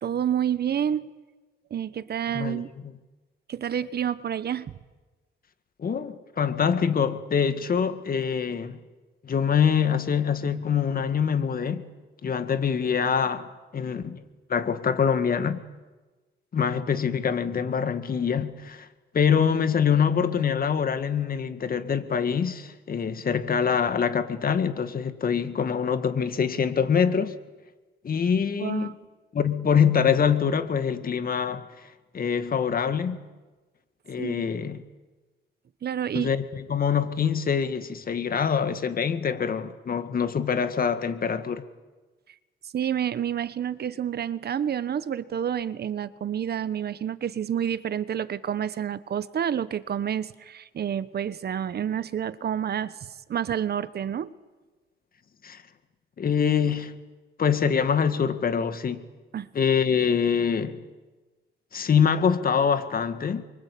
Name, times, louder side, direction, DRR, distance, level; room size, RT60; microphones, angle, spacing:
voice 1, 0.0-1.1 1.7-2.7 3.5-4.7 28.6-28.9 34.2-34.4 35.8-36.3 42.7-53.0 53.3-54.3 59.3-59.5, right 9 dB, 55° right, 1.2 m, -29 dB
voice 2, 2.4-2.7 5.8-8.8 9.2-11.9 12.2-13.5 13.7-14.2 14.5-15.6 16.5-18.9 19.1-27.4 28.0-29.0 29.3-31.6 32.1-33.2 34.1-34.8 36.1-41.6 55.4-55.6 56.2-56.9 57.4-59.1 59.5-60.8 61.7-63.4, left 7 dB, 45° left, 2.0 m, -24 dB
27.5 x 24.0 x 8.6 m
cardioid pair, 90°, 20 cm